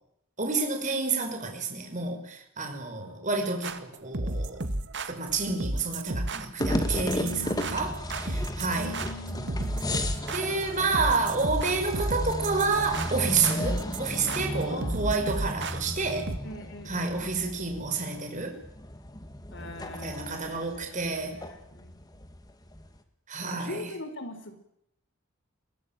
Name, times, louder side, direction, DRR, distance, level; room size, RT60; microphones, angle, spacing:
voice 1, 0.4-3.8 4.0-4.6 5.1-7.9 8.2-8.9 10.3-16.3 16.9-18.6 20.0-21.4 23.3-23.8, right 4 dB, 35° right, 4 dB, 5.5 m, -29 dB
voice 2, 2.9-3.4 7.2-7.9 8.7-10.3 14.7-15.4 16.4-17.4 19.5-21.2 21.5-22.2 23.4-24.6, left 1 dB, 55° left, 9 dB, 4.4 m, -43 dB
sound 1, 3.6-16.4, right 2 dB, 55° right, 2.1 m, -33 dB
sound 2, 6.6-23.0, left 1 dB, 20° left, 2.2 m, -35 dB
22.0 x 21.0 x 9.0 m, 0.77 s
head